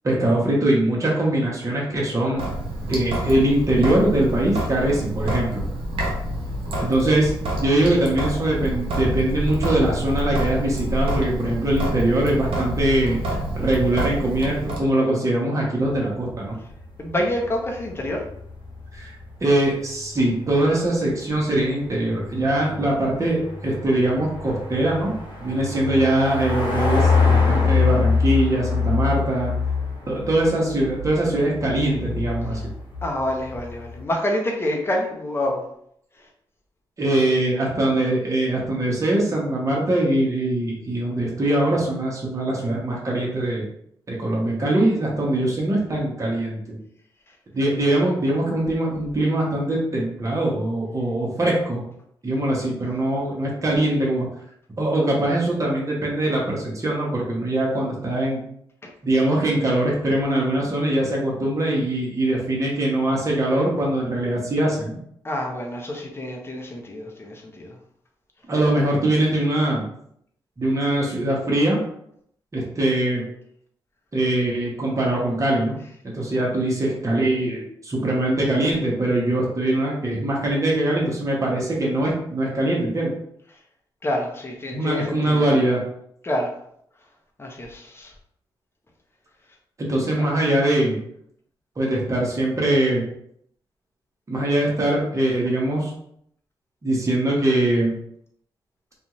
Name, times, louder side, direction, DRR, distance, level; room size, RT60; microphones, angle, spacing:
voice 1, 0.0-2.5 2.9-5.7 6.8-7.3 7.6-13.2 13.5-16.6 18.9-19.1 19.4-29.5 30.1-32.6 37.0-43.7 44.1-46.8 47.5-51.8 52.2-54.3 54.8-58.4 59.0-65.0 68.5-69.8 70.6-71.8 72.5-73.2 74.1-75.8 76.0-83.1 84.7-85.8 89.8-91.0 91.8-93.1 94.3-95.9 96.8-97.9, right 1 dB, 35° right, -3 dB, 1.0 m, -22 dB
Sink (filling or washing) / Drip, 2.4-14.8, right 1 dB, 75° right, 0.7 m, -27 dB
sound 1, 15.8-34.0, left 4 dB, 55° left, 1.0 m, -26 dB
voice 2, 17.0-18.2 33.0-35.6 58.8-58.9 65.2-67.8 84.0-85.4 86.2-86.5 87.4-88.1 90.2-90.3, left 1 dB, 25° left, 0 dB, 0.7 m, -27 dB
2.6 x 2.3 x 3.0 m, 0.70 s
supercardioid pair, 55°, 9 cm